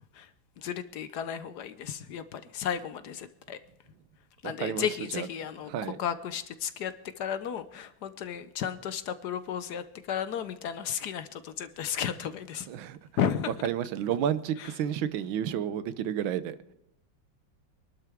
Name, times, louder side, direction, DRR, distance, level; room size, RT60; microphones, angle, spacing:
voice 1, 0.6-3.6 4.4-5.7 6.0-12.7 13.2-13.5 14.6-14.7, left 8 dB, 65° left, 12 dB, 1.2 m, -33 dB
voice 2, 4.4-4.9 5.1-5.3 5.7-6.0 12.7-13.0 13.6-16.6, right 9 dB, 90° right, 14 dB, 1.5 m, -31 dB
24.5 x 12.0 x 3.5 m, 0.81 s
omnidirectional pair, 2.1 m